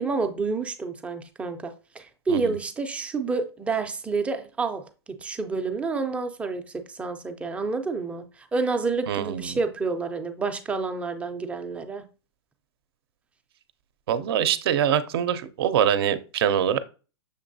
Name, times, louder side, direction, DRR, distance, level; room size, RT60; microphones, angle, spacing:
voice 1, 0.0-12.0, right 4 dB, 10° right, 0.4 m, -29 dB
voice 2, 9.1-9.6 14.1-16.8, right 9 dB, 60° right, 0.5 m, -24 dB
6.5 x 2.9 x 2.6 m
hypercardioid pair, 135°, 14 cm